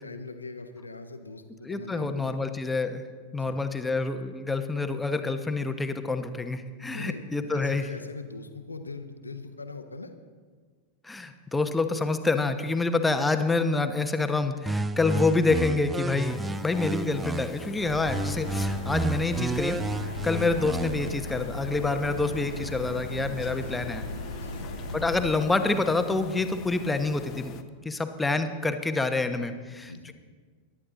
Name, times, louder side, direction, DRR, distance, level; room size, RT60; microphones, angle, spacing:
voice 1, 0.0-2.4 3.3-3.6 6.8-10.1 16.5-16.7 23.4-23.8 24.3-24.7 29.5-30.1, left 3 dB, 80° left, 7 dB, 1.2 m, -41 dB
voice 2, 1.6-3.0 3.3-7.9 11.0-24.0 24.9-27.5 27.8-30.1, left 3 dB, 10° left, 8 dB, 1.1 m, -27 dB
sound 1, 14.7-17.7 18.1-21.1, right 2 dB, 15° right, 0.5 m, -31 dB
sound 2, 16.2-27.6, left 8 dB, 35° left, 0.9 m, -45 dB
Subway metro underground, 17.8-25.3, left 1 dB, 85° right, 1.3 m, -37 dB
22.0 x 11.0 x 3.9 m, 1.5 s
figure-of-eight pair, 90°, 0 cm